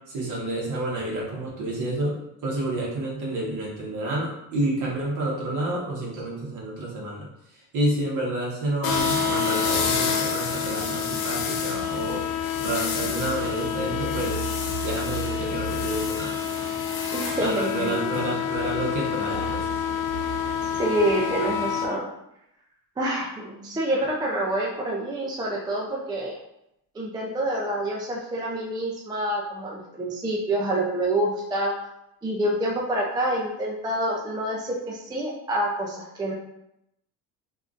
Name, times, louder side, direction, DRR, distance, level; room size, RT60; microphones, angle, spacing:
voice 1, 0.1-7.3 7.7-12.2 12.6-14.4 14.8-16.4 17.4-19.7, right 1 dB, 50° right, -4 dB, 1.4 m, -29 dB
sound 1, 8.8-21.8, left 7 dB, 65° left, 0.6 m, -27 dB
sound 2, 11.7-16.7 18.5-21.5, right 5 dB, 85° right, 0.8 m, -39 dB
voice 2, 17.1-18.2 20.8-22.1 23.0-26.4 26.9-31.7 32.2-36.3, right 1 dB, 10° right, -3 dB, 0.4 m, -27 dB
3.5 x 2.5 x 2.4 m, 0.82 s
cardioid pair, 110°, 40 cm